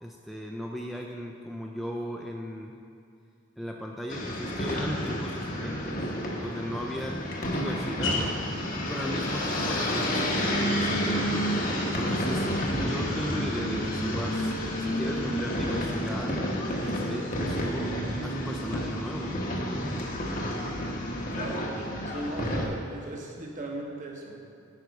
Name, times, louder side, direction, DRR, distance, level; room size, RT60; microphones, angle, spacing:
voice 1, 0.0-2.7 3.6-7.2 7.5-8.3 8.9-11.4 12.0-14.5 14.8-16.4 16.8-17.9 18.2-19.4, equal, ahead, 0 dB, 0.4 m, -37 dB
sound 1, 4.1-22.7, equal, 45° left, 1.0 m, -30 dB
sound 2, 6.4-17.7, left 3 dB, 70° left, 1.1 m, -43 dB
voice 2, 21.3-21.7 22.0-24.4, right 1 dB, 40° right, -1 dB, 1.1 m, -37 dB
9.4 x 5.2 x 4.7 m, 2.5 s
head